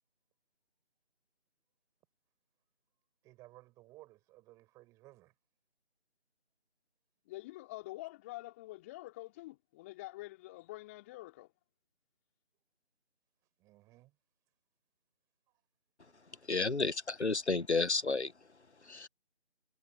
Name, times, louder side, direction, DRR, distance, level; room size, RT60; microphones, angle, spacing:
voice 1, 3.2-5.3 13.6-14.1 16.3-16.4, right 18 dB, 10° right, 7.6 m, -58 dB
voice 2, 7.3-11.5, left 19 dB, 10° left, 3.7 m, -46 dB
voice 3, 16.5-18.3 18.9-19.1, left 3 dB, 70° left, 1.6 m, -31 dB
figure-of-eight pair, 160°, 35 cm